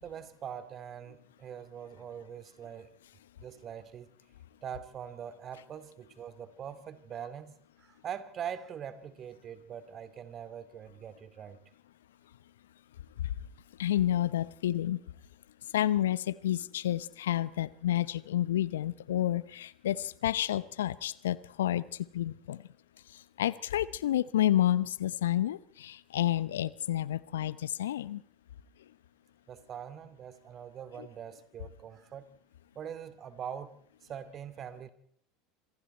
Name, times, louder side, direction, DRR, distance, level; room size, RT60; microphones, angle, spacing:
voice 1, 0.0-2.9 3.4-4.1 4.6-11.6 29.5-32.3 32.8-33.7 34.0-34.9, right 8 dB, 40° right, 12 dB, 2.3 m, -43 dB
voice 2, 13.8-15.0 15.7-21.8 22.1-22.6 23.4-28.2 31.0-31.1, left 12 dB, 75° left, 18 dB, 0.9 m, -30 dB
28.0 x 26.5 x 4.5 m, 0.66 s
hypercardioid pair, 75°, 0 cm